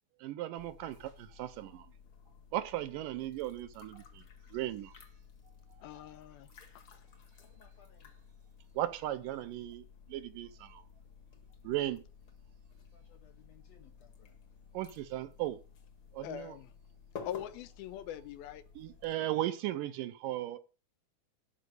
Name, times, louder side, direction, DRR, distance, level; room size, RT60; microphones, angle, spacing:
voice 1, 0.2-1.9 2.5-4.2 4.5-4.9 8.8-10.8 11.6-12.0 14.7-15.6 16.1-16.6 18.8-20.6, right 14 dB, 80° right, 2.2 m, -36 dB
sound 1, 0.6-19.1, left 6 dB, 50° left, 1.5 m, -54 dB
voice 2, 5.8-6.5 16.2-16.7 17.2-18.6, left 11 dB, 90° left, 2.8 m, -42 dB
voice 3, 7.4-8.1 12.9-14.4, left 8 dB, 70° left, 1.6 m, -63 dB
12.5 x 5.3 x 8.0 m
omnidirectional pair, 4.2 m